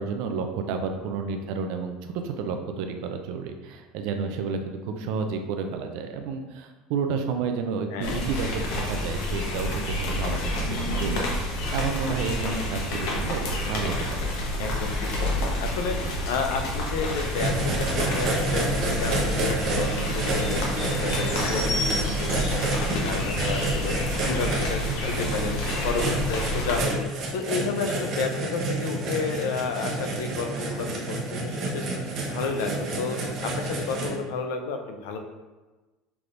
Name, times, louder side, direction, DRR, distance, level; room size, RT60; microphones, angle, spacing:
voice 1, 0.0-14.3, right 5 dB, 60° right, 5 dB, 0.5 m, -31 dB
voice 2, 7.9-8.3 14.6-31.9 32.2-35.2, left 4 dB, 85° left, 5 dB, 0.5 m, -31 dB
sound 1, 8.0-26.8, left 1 dB, 65° left, 0.9 m, -29 dB
sound 2, 11.6-21.6, right 7 dB, 5° right, 0.5 m, -47 dB
sound 3, 17.3-34.1, right 2 dB, 35° right, 0.9 m, -29 dB
5.9 x 3.4 x 2.5 m, 1.2 s
cardioid pair, 170°, 0 cm